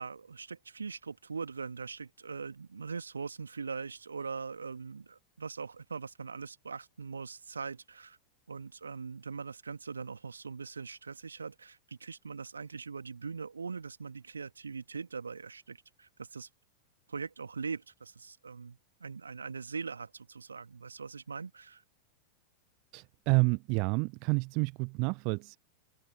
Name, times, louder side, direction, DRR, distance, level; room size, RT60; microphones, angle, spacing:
voice 1, 0.0-8.2 8.5-16.5 17.1-21.8, right 5 dB, 75° right, 2.0 m, -41 dB
voice 2, 22.9-25.6, right 33 dB, 45° right, 0.9 m, -29 dB
open air
figure-of-eight pair, 90°, 0 cm